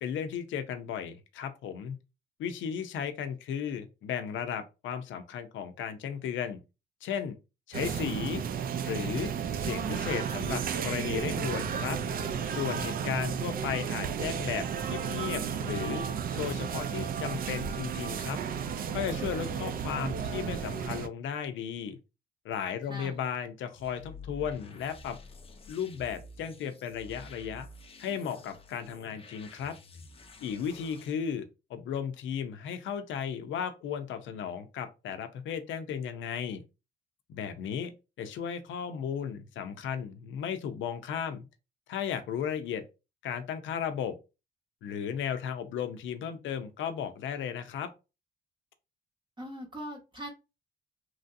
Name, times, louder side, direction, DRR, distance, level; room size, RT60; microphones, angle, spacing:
voice 1, 0.0-1.9 2.4-6.6 7.0-7.4 7.7-8.4 8.9-9.3 9.6-12.0 12.4-16.0 16.3-18.4 18.9-22.0 22.4-25.2 25.7-27.7 28.0-29.7 30.4-36.6 37.3-37.9 38.2-41.4 41.9-42.8 43.2-44.1 44.8-47.9, left 8 dB, 75° left, 0.5 m, -35 dB
sound 1, 7.7-21.1, right 7 dB, 45° right, 0.4 m, -33 dB
sound 2, 23.8-31.1, left 3 dB, 30° left, 0.5 m, -49 dB
voice 2, 49.4-50.3, right 1 dB, 25° right, 0.8 m, -41 dB
3.1 x 2.6 x 2.5 m
cardioid pair, 90°, 20 cm